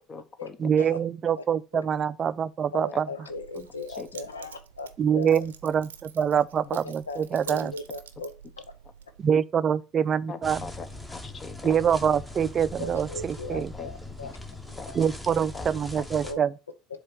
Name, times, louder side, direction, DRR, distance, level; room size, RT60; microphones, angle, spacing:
voice 1, 0.1-1.0 2.9-3.0 3.5-3.7 4.0-4.1 10.3-11.8 13.5-13.9 14.8-14.9 15.5-15.7 16.0-16.1, left 4 dB, 30° left, 0.9 m, -41 dB
voice 2, 0.6-3.1 5.0-5.9 6.1-7.7 9.2-10.7 11.6-13.7 15.0-16.5, right 8 dB, 40° right, 0.4 m, -25 dB
voice 3, 2.7-4.9 5.1-5.3 6.8-8.3 10.5-10.6 12.8-14.3 14.9-15.0 16.2-16.4, left 2 dB, 90° left, 0.7 m, -38 dB
Keys jangling, 3.3-9.3, right 8 dB, 85° right, 0.6 m, -48 dB
sound 1, 10.4-16.3, left 2 dB, 10° left, 1.2 m, -40 dB
7.4 x 2.9 x 6.1 m
hypercardioid pair, 70°, 0 cm